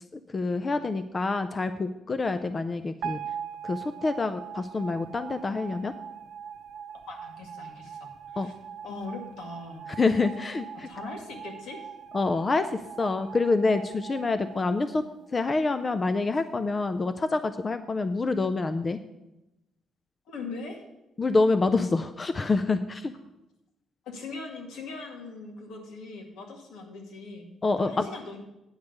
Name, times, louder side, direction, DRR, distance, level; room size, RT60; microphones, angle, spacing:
voice 1, 0.1-3.2 3.6-5.9 8.4-8.5 10.0-10.9 12.1-15.0 15.3-19.0 21.2-23.1 27.6-28.1, left 3 dB, 20° left, 10 dB, 0.4 m, -27 dB
sound 1, 3.0-15.3, right 8 dB, 70° right, 0.7 m, -41 dB
voice 2, 7.1-8.5 8.8-9.8 10.9-11.9 20.3-20.8 24.1-28.4, left 3 dB, 80° left, 2 dB, 2.0 m, -40 dB
9.5 x 5.3 x 7.9 m, 0.93 s
cardioid pair, 170°, 0 cm